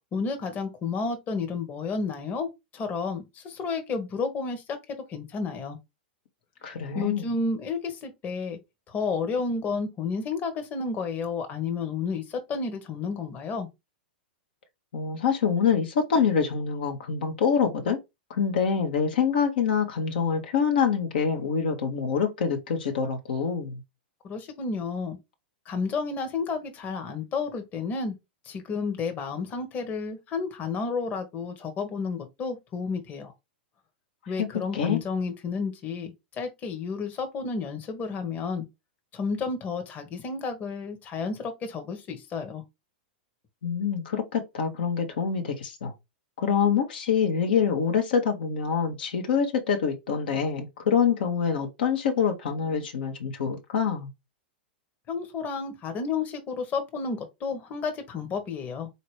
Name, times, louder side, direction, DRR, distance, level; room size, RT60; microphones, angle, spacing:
voice 1, 0.1-2.5 2.7-4.8 5.1-5.8 6.9-8.6 8.9-13.7 24.2-25.2 25.6-28.1 28.4-33.3 34.3-38.6 39.1-42.6 55.1-58.9, left 4 dB, 30° left, 1.2 m, -31 dB
voice 2, 6.6-7.3 14.9-18.0 18.3-23.8 34.4-34.5 34.7-35.0 43.6-45.9 46.4-54.1, left 6 dB, 65° left, 1.1 m, -25 dB
4.2 x 2.8 x 3.2 m
figure-of-eight pair, 100°, 6 cm